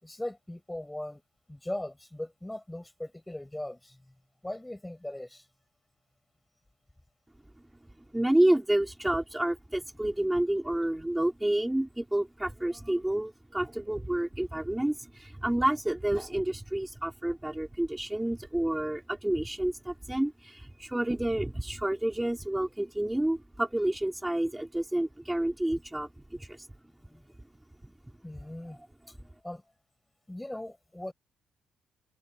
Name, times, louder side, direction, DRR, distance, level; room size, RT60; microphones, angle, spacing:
voice 1, 0.0-1.2 1.5-4.0 4.4-5.5 27.1-27.2 28.2-28.8 29.4-29.6 30.3-31.1, left 1 dB, 10° left, 5.7 m, -39 dB
voice 2, 8.1-26.7, right 1 dB, 10° right, 4.9 m, -29 dB
cardioid pair, 90°, 0 cm